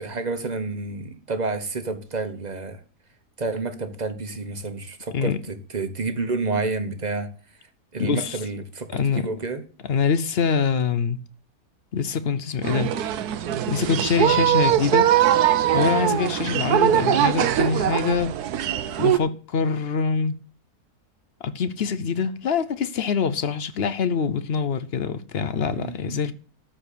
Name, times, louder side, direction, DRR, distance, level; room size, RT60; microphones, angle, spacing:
voice 1, 0.0-2.8 3.4-7.3 7.9-9.6 16.6-16.8 25.7-26.2, right 3 dB, 30° right, 1.1 m, -30 dB
voice 2, 8.0-8.4 8.9-9.3 9.9-11.2 11.9-12.9 13.7-15.1 15.7-18.3 19.0-20.3 21.4-26.3, left 6 dB, 55° left, 0.7 m, -24 dB
sound 1, 12.6-19.2, right 11 dB, 80° right, 1.3 m, -21 dB
13.0 x 4.8 x 8.4 m
omnidirectional pair, 1.6 m